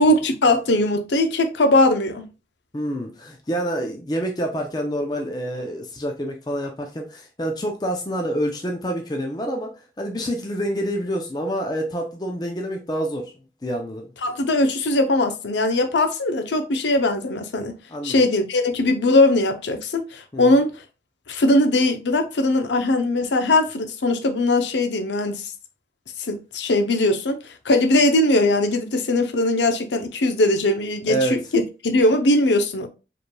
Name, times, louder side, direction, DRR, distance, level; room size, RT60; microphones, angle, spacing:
voice 1, 0.0-2.2 14.2-17.7 18.0-20.7 21.3-25.5 26.3-27.4 27.6-32.9, left 2 dB, 85° left, 0.6 m, -20 dB
voice 2, 2.7-13.3 13.6-14.1 17.9-18.2 20.3-20.4 31.1-31.4, right 1 dB, 20° left, 0.5 m, -27 dB
4.9 x 3.2 x 2.2 m
head